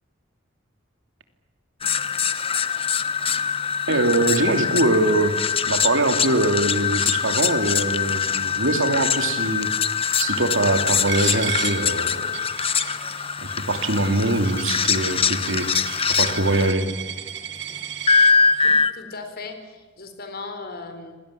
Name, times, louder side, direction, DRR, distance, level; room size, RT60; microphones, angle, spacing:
sound 1, 1.8-16.7 18.1-18.9, left 6 dB, 30° left, 1.1 m, -23 dB
voice 1, 3.9-9.7 10.2-12.2 13.7-15.8 16.2-16.9, right 2 dB, 80° right, 7 dB, 2.9 m, -22 dB
Coin (dropping), 11.1-18.3, right 11 dB, 65° right, 1.5 m, -34 dB
voice 2, 18.2-21.1, left 3 dB, 50° left, 7 dB, 4.2 m, -38 dB
26.5 x 18.0 x 10.0 m, 1.3 s
head